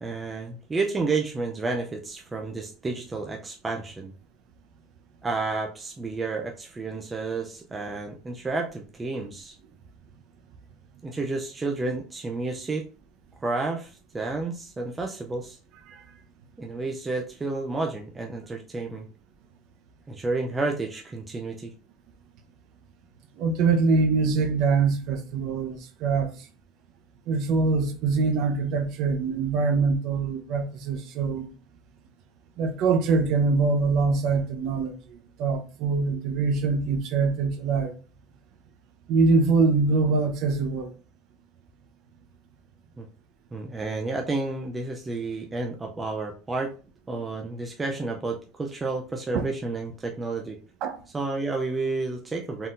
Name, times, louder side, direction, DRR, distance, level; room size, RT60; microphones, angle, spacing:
voice 1, 0.0-4.1 5.2-9.6 11.0-12.8 13.4-15.6 16.6-19.1 20.1-21.7 43.0-43.1 43.5-46.7 47.1-50.6 51.1-52.7, right 3 dB, 10° right, 0.4 m, -31 dB
voice 2, 23.4-26.3 27.3-31.5 32.6-34.9 35.4-37.9 39.1-40.9 47.1-47.2 49.3-49.4 50.8-51.0, right 4 dB, 50° right, 0.7 m, -24 dB
4.3 x 3.7 x 2.5 m
cardioid pair, 170°, 0 cm